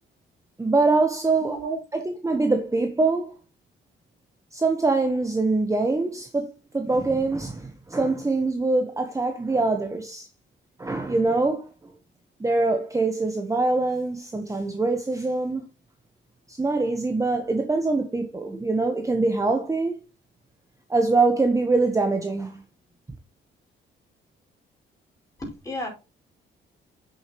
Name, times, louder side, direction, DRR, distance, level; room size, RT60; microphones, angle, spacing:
voice 1, 0.6-1.6 2.2-3.3 4.5-10.3 10.8-11.7 12.4-15.7 16.5-20.0 20.9-22.6, right 3 dB, 15° right, 1.1 m, -24 dB
voice 2, 1.3-2.0 25.4-25.9, right 1 dB, 15° left, 5.2 m, -33 dB
8.1 x 6.7 x 3.0 m
cardioid pair, 90°, 20 cm